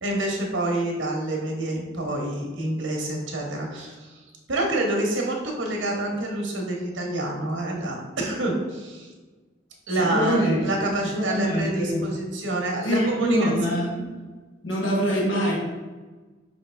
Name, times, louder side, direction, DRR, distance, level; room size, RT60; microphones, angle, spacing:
voice 1, 0.0-4.2 4.5-9.1 9.9-13.5, right 1 dB, 85° right, 0 dB, 0.9 m, -27 dB
voice 2, 10.1-10.6 11.0-12.0 12.8-14.0 14.6-15.5, equal, 80° left, -4 dB, 1.1 m, -24 dB
5.2 x 2.8 x 3.3 m, 1.3 s
head